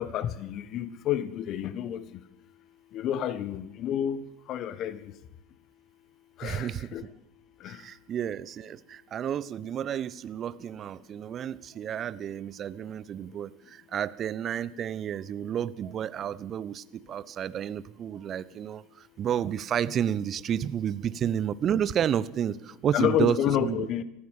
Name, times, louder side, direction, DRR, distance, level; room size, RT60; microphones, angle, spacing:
voice 1, 0.0-2.0 2.9-4.2 4.5-5.0 6.4-7.0 22.9-24.0, left 10 dB, 40° left, 1.5 m, -29 dB
voice 2, 6.4-7.1 7.7-23.9, right 9 dB, 35° right, 0.9 m, -31 dB
25.5 x 14.5 x 7.4 m
figure-of-eight pair, 80°, 0 cm